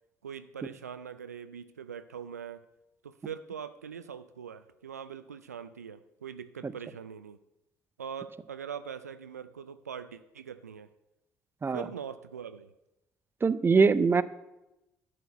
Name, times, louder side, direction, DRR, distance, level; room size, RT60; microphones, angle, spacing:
voice 1, 0.2-2.7 3.0-7.4 8.0-10.9 11.7-12.7, right 7 dB, 90° right, 12 dB, 0.4 m, -42 dB
voice 2, 13.4-14.2, right 4 dB, 25° right, 16 dB, 0.6 m, -23 dB
11.5 x 4.7 x 8.0 m, 0.93 s
figure-of-eight pair, 50°, 8 cm